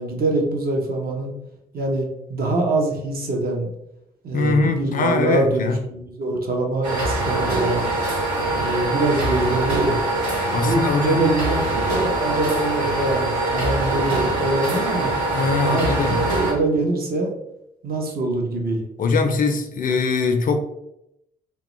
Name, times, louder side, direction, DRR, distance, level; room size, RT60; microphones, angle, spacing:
voice 1, 0.0-1.3 1.7-3.7 4.2-7.8 8.5-10.0 10.5-15.1 15.6-17.3 17.8-18.8, right 2 dB, 50° right, 0.7 m, -24 dB
voice 2, 4.3-5.8 10.5-11.2 15.3-16.2 19.0-20.6, left 4 dB, 45° left, 0.4 m, -22 dB
sound 1, 6.8-16.5, right 2 dB, 90° right, 0.7 m, -23 dB
2.1 x 2.0 x 3.0 m
hypercardioid pair, 40°, 21 cm